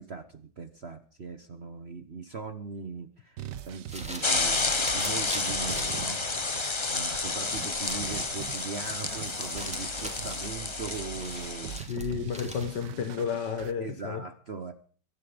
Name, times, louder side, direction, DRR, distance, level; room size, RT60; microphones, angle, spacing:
voice 1, 0.0-11.9 13.8-14.7, right 5 dB, 40° right, 9 dB, 1.2 m, -40 dB
sound 1, 3.4-13.7, right 9 dB, 80° right, 1.6 m, -43 dB
sound 2, 3.7-12.9, equal, 5° right, 2.7 m, -43 dB
sound 3, 4.2-11.8, left 3 dB, 25° left, 0.6 m, -30 dB
voice 2, 11.9-14.2, left 7 dB, 75° left, 8 dB, 2.0 m, -32 dB
23.0 x 11.5 x 5.1 m, 0.42 s
omnidirectional pair, 1.9 m